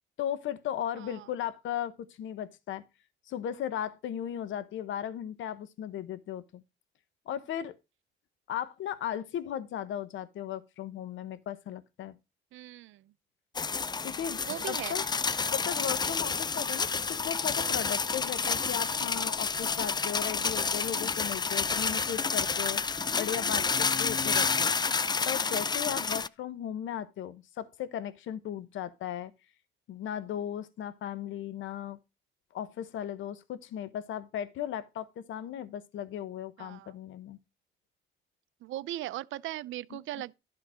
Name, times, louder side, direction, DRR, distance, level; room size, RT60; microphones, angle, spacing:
voice 1, 0.2-2.8 3.3-6.6 7.3-7.7 8.5-12.1 14.0-14.4 14.7-15.0 15.5-22.8 23.2-24.7 25.3-29.3 29.9-32.0 32.5-37.4 39.9-40.0, left 10 dB, 75° left, 0.9 m, -36 dB
voice 2, 12.5-13.0 14.4-14.9 21.8-22.1 36.6-36.9 38.6-40.4, right 15 dB, 80° right, 0.5 m, -39 dB
sound 1, 13.5-26.3, left 5 dB, 20° left, 0.4 m, -29 dB
11.5 x 3.9 x 6.2 m
cardioid pair, 90°, 20 cm